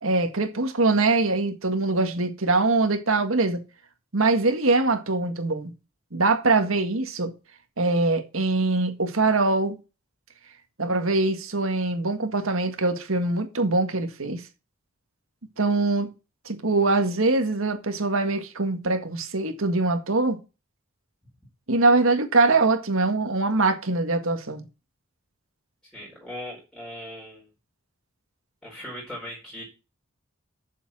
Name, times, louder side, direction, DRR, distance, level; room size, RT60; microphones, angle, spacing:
voice 1, 0.0-3.6 4.1-5.7 6.1-7.3 7.8-9.8 10.8-14.4 15.6-16.1 16.5-20.4 21.7-24.7, right 3 dB, 75° right, 1.8 m, -23 dB
voice 2, 25.9-27.5 28.6-29.6, left 1 dB, 5° left, 4.3 m, -39 dB
7.4 x 7.1 x 7.3 m
head